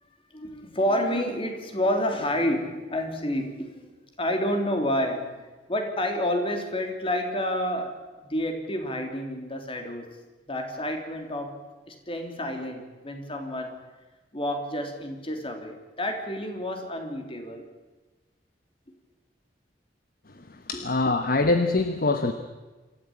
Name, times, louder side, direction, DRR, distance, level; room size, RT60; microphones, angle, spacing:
voice 1, 0.3-3.9 4.2-5.4 5.7-8.0 8.2-10.1 10.5-11.6 11.9-13.8 14.3-17.7, left 1 dB, 30° left, 4 dB, 3.2 m, -29 dB
voice 2, 20.3-22.3, left 2 dB, 55° left, 8 dB, 1.1 m, -24 dB
26.5 x 14.0 x 8.8 m, 1.2 s
head